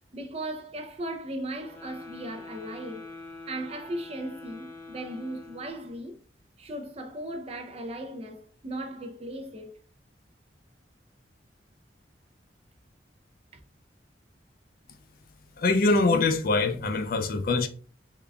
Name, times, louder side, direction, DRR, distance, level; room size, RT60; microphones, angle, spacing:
voice 1, 0.1-3.1 3.5-6.2 6.6-9.8, right 1 dB, 35° right, 0.5 m, -37 dB
sound 1, 1.5-6.1, left 2 dB, 10° left, 0.7 m, -45 dB
voice 2, 15.6-17.7, left 3 dB, 50° left, 0.4 m, -23 dB
3.7 x 2.3 x 3.3 m
head